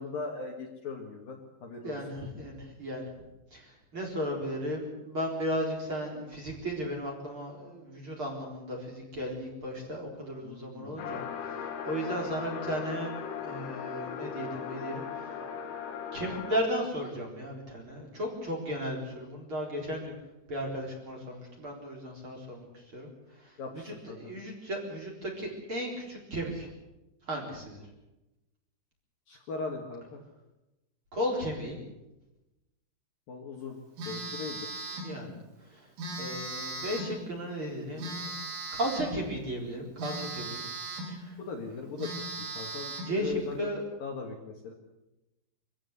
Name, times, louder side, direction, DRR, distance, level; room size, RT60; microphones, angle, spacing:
voice 1, 0.0-2.0 10.4-11.2 23.6-24.2 29.3-30.2 33.3-33.8 34.0-34.8 41.4-42.2 42.5-43.7 44.0-44.7, left 4 dB, 55° left, 1 dB, 3.2 m, -39 dB
voice 2, 1.8-3.0 3.5-13.1 13.4-15.0 16.1-20.1 20.5-22.7 22.9-23.1 23.4-23.5 23.8-26.7 27.3-27.8 31.1-31.8 35.0-35.3 35.7-35.9 36.2-38.3 38.7-40.6 41.1-41.4 41.7-41.9 43.0-43.8, equal, 25° right, -1 dB, 4.4 m, -35 dB
sound 1, 11.0-16.6, left 7 dB, 80° left, 4.6 m, -38 dB
Telephone, 34.0-35.2 36.0-37.2 38.0-39.2 40.0-41.2 41.6-41.7 42.0-43.2, right 2 dB, 85° right, 7.2 m, -37 dB
25.0 x 15.5 x 8.3 m, 0.97 s
omnidirectional pair, 5.8 m